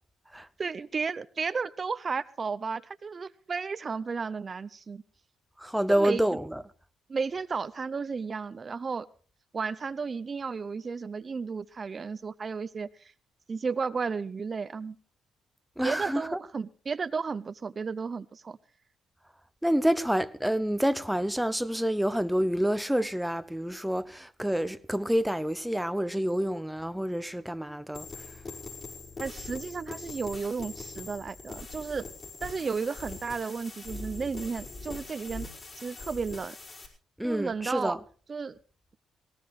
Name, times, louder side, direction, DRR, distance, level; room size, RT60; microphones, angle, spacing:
voice 1, 0.6-5.0 5.9-6.2 7.1-9.1 9.5-13.1 13.5-15.0 15.8-18.6 29.2-32.0 32.4-35.5 35.7-36.6 37.2-38.0 38.3-38.6, right 5 dB, 35° right, 0.6 m, -33 dB
voice 2, 5.6-6.6 15.8-16.4 19.6-28.1 37.2-38.0, equal, 5° right, 0.7 m, -28 dB
sound 1, 27.9-36.9, left 3 dB, 40° left, 4.9 m, -42 dB
18.5 x 18.0 x 3.2 m
cardioid pair, 90°, 0 cm